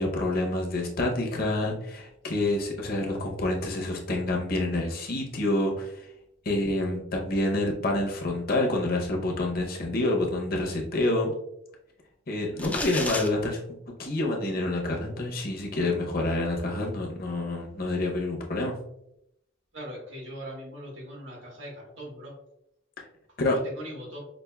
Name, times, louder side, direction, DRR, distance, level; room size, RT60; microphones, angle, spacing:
voice 1, 0.0-6.1 6.4-11.3 12.3-18.7 23.0-23.1 23.4-23.6, left 2 dB, 50° left, 1 dB, 0.7 m, -28 dB
sound 1, 12.6-13.3, left 2 dB, 10° left, 0.3 m, -31 dB
voice 2, 19.7-22.3 23.7-24.2, equal, 85° right, -2 dB, 1.5 m, -40 dB
5.1 x 2.5 x 2.2 m, 0.79 s
head